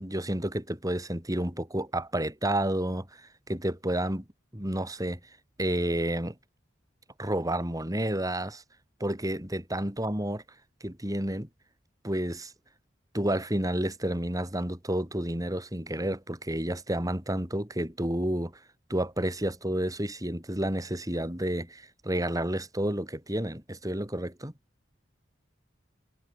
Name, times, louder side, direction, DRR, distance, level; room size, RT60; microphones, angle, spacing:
voice 1, 0.0-3.1 3.5-4.2 4.5-5.2 5.6-6.4 7.2-8.6 9.0-10.4 10.8-11.5 12.0-12.5 13.1-18.5 18.9-24.5, right 1 dB, 20° right, 5.4 m, -30 dB
head